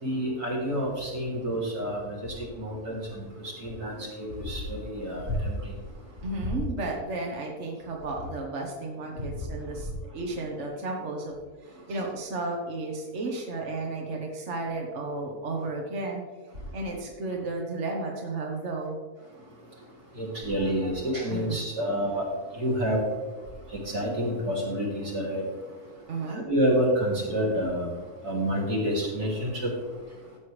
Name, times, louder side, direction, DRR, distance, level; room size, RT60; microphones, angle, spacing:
voice 1, 0.0-3.2 3.6-5.8 20.2-22.2 22.5-23.0 23.9-25.4 26.4-27.9 28.2-29.5, equal, 85° right, -5 dB, 3.7 m, -28 dB
voice 2, 6.2-11.3 11.6-16.2 16.7-19.0 21.3-21.6 26.1-26.4, right 2 dB, 50° right, 0 dB, 1.6 m, -33 dB
13.0 x 8.0 x 3.3 m, 1.4 s
omnidirectional pair, 1.6 m